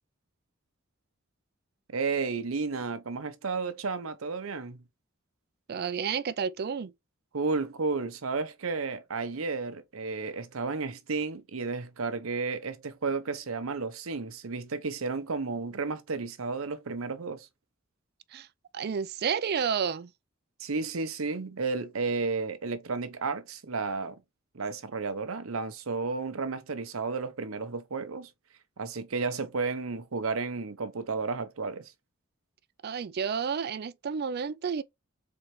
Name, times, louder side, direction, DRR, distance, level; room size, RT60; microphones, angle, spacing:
voice 1, 1.9-4.8 7.3-17.5 20.6-24.2 24.5-28.3 28.8-31.9, right 4 dB, 85° right, 0.8 m, -32 dB
voice 2, 5.7-6.9 18.3-18.5 18.7-20.1 32.8-34.8, right 6 dB, 50° right, 0.4 m, -30 dB
4.3 x 3.9 x 3.1 m
head